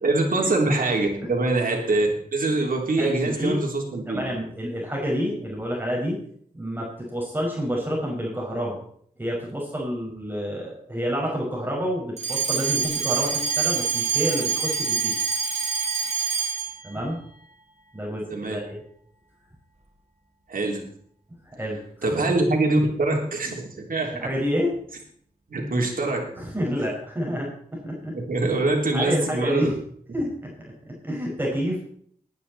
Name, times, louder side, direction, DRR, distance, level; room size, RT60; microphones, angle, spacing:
voice 1, 0.0-4.2 18.3-18.6 20.5-20.8 22.0-24.3 25.5-26.3 28.1-29.7, right 2 dB, 65° right, 0 dB, 3.6 m, -24 dB
voice 2, 3.0-3.6 4.1-6.2 6.5-8.8 9.2-15.2 16.8-17.2 17.9-18.8 21.5-22.2 24.2-24.7 26.3-28.2 28.4-28.5 28.9-29.8 30.1-31.8, equal, 15° right, -3 dB, 5.5 m, -29 dB
Alarm, 12.2-16.8, right 5 dB, 45° right, 3.4 m, -25 dB
20.0 x 9.9 x 4.3 m, 0.62 s
wide cardioid pair, 90°, 15 cm